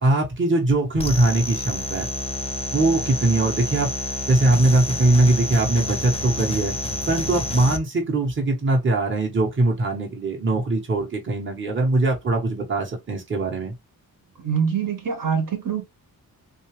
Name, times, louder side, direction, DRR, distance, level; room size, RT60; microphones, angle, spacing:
voice 1, 0.0-2.1 2.7-3.9 4.3-6.7 7.1-13.7, right 2 dB, 30° right, 1.1 m, -21 dB
sound 1, 1.0-7.8, left 1 dB, 15° left, 0.7 m, -29 dB
voice 2, 14.4-15.8, right 7 dB, 60° right, 1.4 m, -24 dB
3.7 x 2.6 x 3.1 m
wide cardioid pair, 125°, 36 cm